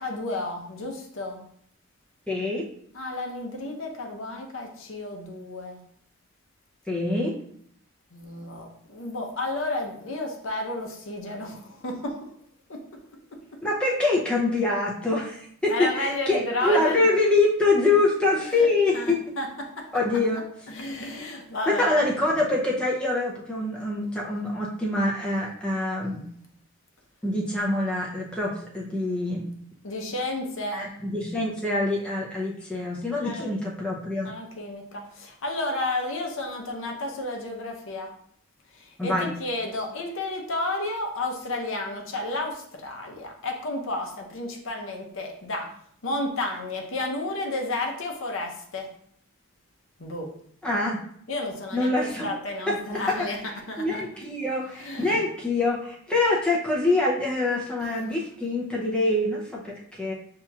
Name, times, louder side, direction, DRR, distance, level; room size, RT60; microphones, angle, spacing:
voice 1, 0.0-1.4 2.9-5.8 8.1-12.2 12.7-12.8 15.7-17.0 18.6-18.7 18.9-19.8 20.7-21.9 29.8-30.9 33.2-33.6 34.2-38.1 39.0-45.7 46.0-48.9 50.0-50.3 51.3-53.4 53.7-54.2 54.8-55.2, left 2 dB, 60° left, 2 dB, 0.7 m, -32 dB
voice 2, 2.3-2.7 6.9-7.4 13.6-19.2 19.9-20.4 21.6-26.3 27.2-29.5 30.7-34.3 39.0-39.3 50.6-51.0 51.7-52.3 52.7-53.4 53.8-60.1, left 2 dB, 5° left, -4 dB, 0.5 m, -25 dB
6.8 x 2.9 x 2.3 m, 0.65 s
head